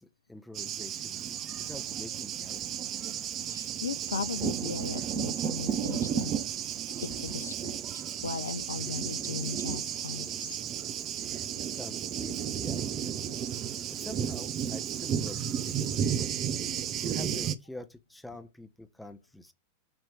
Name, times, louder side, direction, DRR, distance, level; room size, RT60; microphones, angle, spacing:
voice 1, 0.0-2.6 11.2-13.2 13.9-19.5, left 1 dB, 5° left, 0.9 m, -47 dB
Thunder, 0.5-17.5, right 9 dB, 35° right, 0.6 m, -33 dB
voice 2, 3.5-6.3 6.6-6.7 7.0-10.5, left 5 dB, 70° left, 0.4 m, -37 dB
8.6 x 3.1 x 4.6 m
figure-of-eight pair, 90°, 0 cm